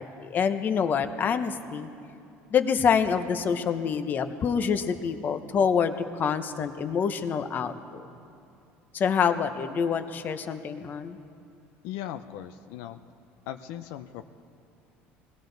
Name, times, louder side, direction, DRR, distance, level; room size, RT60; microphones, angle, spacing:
voice 1, 0.0-1.9 2.5-8.1 8.9-11.2, left 6 dB, 40° left, 9 dB, 0.8 m, -26 dB
voice 2, 11.8-13.0 13.5-14.3, left 11 dB, 85° left, 9 dB, 0.5 m, -38 dB
19.5 x 16.5 x 4.0 m, 2.6 s
cardioid pair, 120°, 5 cm